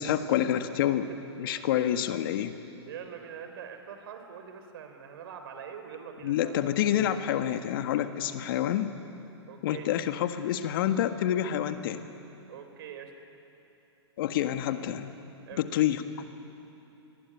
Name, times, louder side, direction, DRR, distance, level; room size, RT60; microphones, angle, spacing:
voice 1, 0.0-2.5 6.2-8.9 9.6-12.0 14.2-15.1 15.6-16.2, left 11 dB, 50° left, 9 dB, 1.5 m, -28 dB
voice 2, 0.7-1.2 1.5-1.6 2.9-6.6 9.5-9.9 12.5-13.1 15.5-15.6, right 8 dB, 60° right, 7 dB, 4.1 m, -44 dB
27.0 x 22.0 x 9.9 m, 2.9 s
hypercardioid pair, 115°, 14 cm